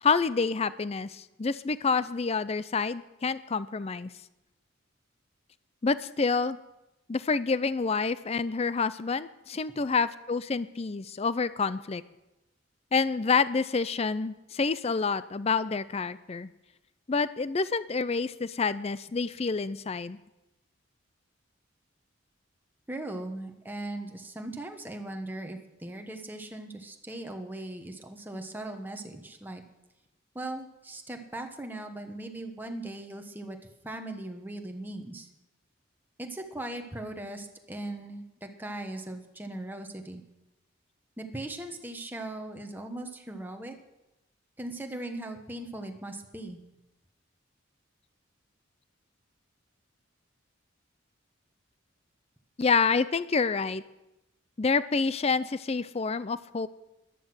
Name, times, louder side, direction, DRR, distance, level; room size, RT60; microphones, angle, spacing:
voice 1, 0.0-4.1 5.8-6.6 7.1-12.0 12.9-16.5 17.1-20.2 52.6-53.8 54.6-56.7, left 4 dB, 30° left, 16 dB, 0.4 m, -28 dB
voice 2, 22.9-29.6 30.3-33.6 33.8-35.3 36.2-40.2 41.2-43.7 44.6-46.6, right 1 dB, 10° right, 4 dB, 1.3 m, -39 dB
14.0 x 11.5 x 6.3 m, 0.94 s
head